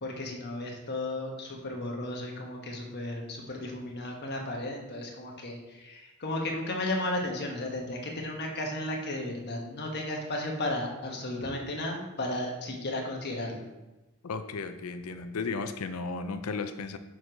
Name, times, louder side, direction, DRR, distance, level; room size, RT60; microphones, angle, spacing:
voice 1, 0.0-13.7, left 1 dB, 50° left, 0 dB, 1.3 m, -34 dB
voice 2, 14.2-17.0, left 4 dB, 90° left, 9 dB, 0.5 m, -34 dB
6.3 x 4.7 x 5.0 m, 1.0 s
head